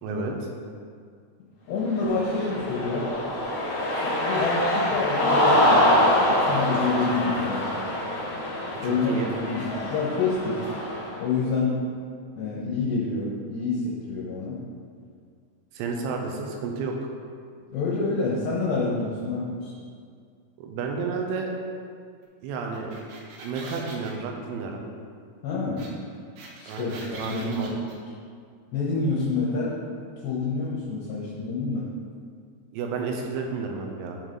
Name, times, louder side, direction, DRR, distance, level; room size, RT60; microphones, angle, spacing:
voice 1, 0.0-0.3 8.8-9.3 15.7-17.1 20.6-21.5 22.4-22.9 23.4-24.8 26.7-27.7 32.7-34.2, right 5 dB, 90° right, 1 dB, 3.6 m, -31 dB
voice 2, 1.7-3.1 4.0-7.7 8.8-9.1 9.5-10.6 11.2-11.7 12.4-14.6 17.7-19.7 25.4-25.8 26.6-27.8 28.7-29.7 30.2-31.9, left 4 dB, 75° left, -6 dB, 2.8 m, -28 dB
Cheering, 1.9-11.1, left 1 dB, 55° left, 2.3 m, -25 dB
sound 1, 22.7-24.1 25.8-25.9 26.1-27.9, right 3 dB, 75° right, 2.7 m, -42 dB
12.0 x 4.8 x 4.0 m, 2.2 s
omnidirectional pair, 5.9 m